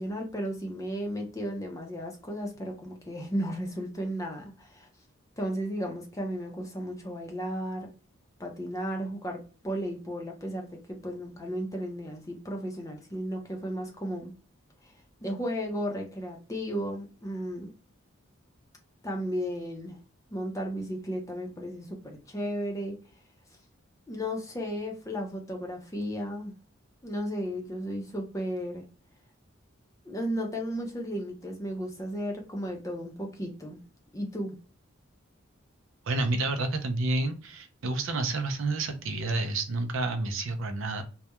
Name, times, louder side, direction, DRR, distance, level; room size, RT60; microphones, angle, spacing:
voice 1, 0.0-4.9 5.4-7.9 8.4-10.7 11.0-14.3 14.8-14.9 15.2-17.7 19.0-20.0 20.3-23.0 24.1-26.5 27.0-28.8 30.0-33.8 34.1-34.6, equal, 15° left, 0.5 m, -34 dB
voice 2, 36.1-41.0, right 2 dB, 70° right, 0.5 m, -29 dB
2.3 x 2.1 x 2.8 m
head